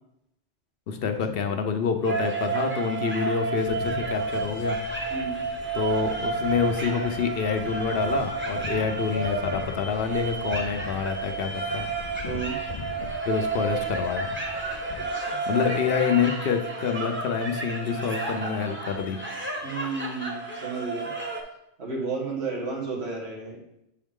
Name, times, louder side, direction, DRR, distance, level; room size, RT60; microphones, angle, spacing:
voice 1, 0.9-4.8 5.7-11.9 13.3-14.3 15.5-19.2, left 6 dB, 65° left, 6 dB, 0.8 m, -27 dB
sound 1, 2.0-21.4, right 4 dB, 10° right, 0.9 m, -31 dB
sound 2, 3.6-15.1, left 5 dB, 50° left, 0.4 m, -42 dB
voice 2, 5.1-5.4 12.2-12.6 15.0-15.4 19.6-21.1 21.8-23.6, right 4 dB, 75° right, -2 dB, 1.8 m, -32 dB
7.0 x 4.6 x 3.6 m, 0.82 s
omnidirectional pair, 1.1 m